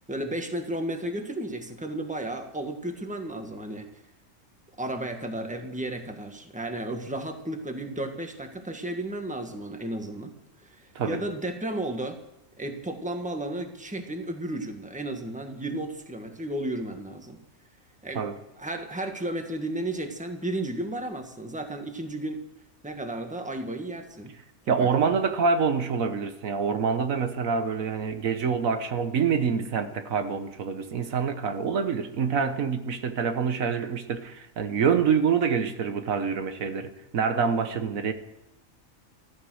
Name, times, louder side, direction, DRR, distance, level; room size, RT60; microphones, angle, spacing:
voice 1, 0.1-3.9 4.8-12.2 12.6-17.4 18.0-18.2 18.6-22.4 22.8-24.3 24.6-25.1, right 1 dB, 5° right, 1.5 m, -33 dB
voice 2, 24.7-38.1, right 6 dB, 75° right, 1.4 m, -26 dB
14.5 x 13.5 x 6.3 m
omnidirectional pair, 1.4 m